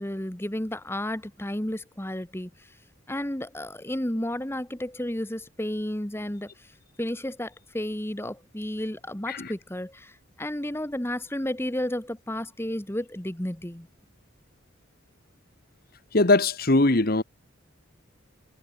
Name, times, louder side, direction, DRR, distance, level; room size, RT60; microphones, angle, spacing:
voice 1, 0.0-2.7 3.1-6.7 7.0-13.9, left 1 dB, 10° left, 1.3 m, -32 dB
voice 2, 16.1-17.2, left 2 dB, 45° left, 1.3 m, -21 dB
head